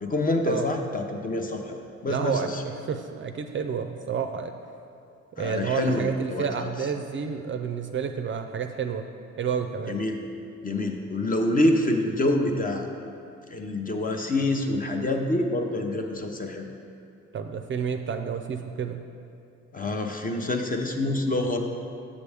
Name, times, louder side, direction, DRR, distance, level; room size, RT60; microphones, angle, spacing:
voice 1, 0.0-2.6 5.4-6.7 9.9-10.2 10.6-12.9 13.5-16.7 19.7-21.6, left 1 dB, 30° left, 3 dB, 0.7 m, -26 dB
voice 2, 2.1-4.5 5.4-9.1 9.4-10.0 17.3-19.0, right 6 dB, 40° right, 6 dB, 0.4 m, -30 dB
7.2 x 6.8 x 3.4 m, 2.7 s
cardioid pair, 90°, 30 cm